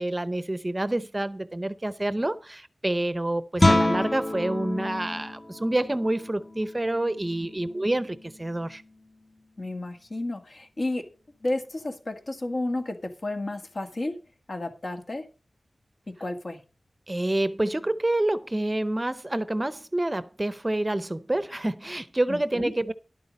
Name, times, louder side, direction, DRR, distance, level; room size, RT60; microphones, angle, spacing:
voice 1, 0.0-8.8 17.1-22.9, right 1 dB, 25° right, 0.7 m, -28 dB
Guitar, 3.6-9.1, left 1 dB, 25° left, 1.1 m, -28 dB
voice 2, 9.6-11.0 11.4-14.1 14.5-15.3 16.1-16.6 22.3-22.7, left 2 dB, 60° left, 2.0 m, -32 dB
11.0 x 8.6 x 5.3 m
wide cardioid pair, 70°, 0 cm